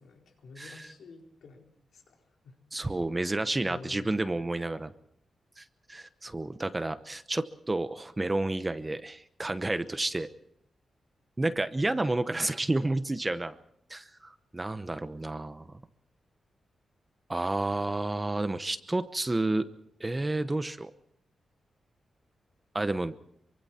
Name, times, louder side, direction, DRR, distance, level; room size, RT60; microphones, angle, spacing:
voice 1, 0.0-2.2 2.4-2.6 3.6-4.2, left 4 dB, 80° left, 1 dB, 4.6 m, -49 dB
voice 2, 0.6-0.9 2.7-4.9 5.6-5.7 5.9-10.3 11.4-13.5 13.9-15.7 17.3-19.7 20.0-20.9 22.7-23.1, right 2 dB, 15° right, 11 dB, 0.9 m, -30 dB
27.0 x 24.0 x 4.4 m, 0.72 s
wide cardioid pair, 155°, 0 cm